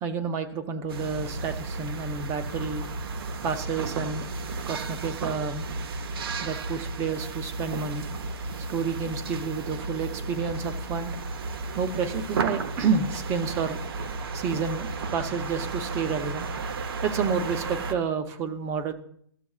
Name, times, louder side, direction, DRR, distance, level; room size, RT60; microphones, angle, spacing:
voice 1, 0.0-2.8 3.4-4.3 4.7-5.7 6.4-8.1 8.7-11.1 11.8-13.8 14.3-16.5 17.0-18.9, right 5 dB, 20° right, 9 dB, 0.6 m, -30 dB
sound 1, 0.9-17.9, right 3 dB, 60° right, 0.7 m, -33 dB
13.5 x 6.9 x 2.4 m, 0.64 s
hypercardioid pair, 150°, 14 cm